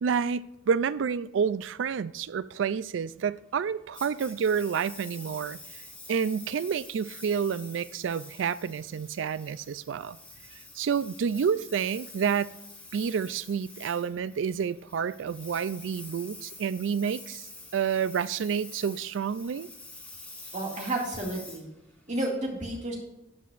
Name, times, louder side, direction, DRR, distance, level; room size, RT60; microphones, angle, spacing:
voice 1, 0.0-5.6 6.1-10.2 10.8-12.6 12.9-19.7, right 7 dB, 90° right, 0.4 m, -29 dB
Engine, 3.9-22.4, left 2 dB, 5° left, 1.4 m, -47 dB
voice 2, 20.5-21.7 22.1-22.9, right 1 dB, 40° right, 2.3 m, -31 dB
13.0 x 8.4 x 2.5 m
head